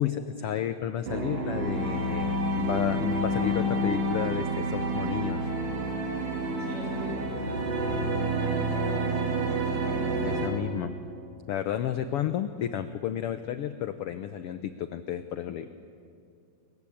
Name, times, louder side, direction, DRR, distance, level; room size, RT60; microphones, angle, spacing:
voice 1, 0.0-5.5 10.2-10.9 11.5-15.7, left 10 dB, 75° left, 10 dB, 1.3 m, -31 dB
sound 1, 1.1-10.5, right 1 dB, 70° right, 4.7 m, -29 dB
voice 2, 6.6-9.6, right 1 dB, 45° right, -2 dB, 8.4 m, -43 dB
29.0 x 23.0 x 8.6 m, 2.5 s
omnidirectional pair, 3.6 m